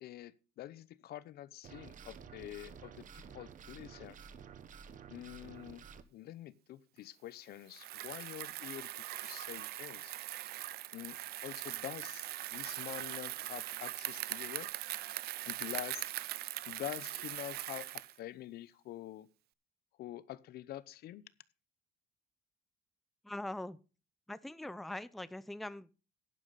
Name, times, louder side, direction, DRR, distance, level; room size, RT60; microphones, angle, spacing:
voice 1, 0.0-4.2 5.1-5.8 6.1-8.9 9.2-10.1 10.9-14.7 15.5-16.0 16.7-19.3 20.0-21.3, left 13 dB, 70° left, 0.7 m, -46 dB
sound 1, 1.6-6.0, right 7 dB, 50° right, 1.1 m, -52 dB
Bicycle, 7.7-18.2, right 15 dB, 70° right, 0.5 m, -41 dB
voice 2, 23.2-23.8 24.3-25.9, left 1 dB, ahead, 0.5 m, -42 dB
11.0 x 11.0 x 4.0 m
cardioid pair, 110°, 17 cm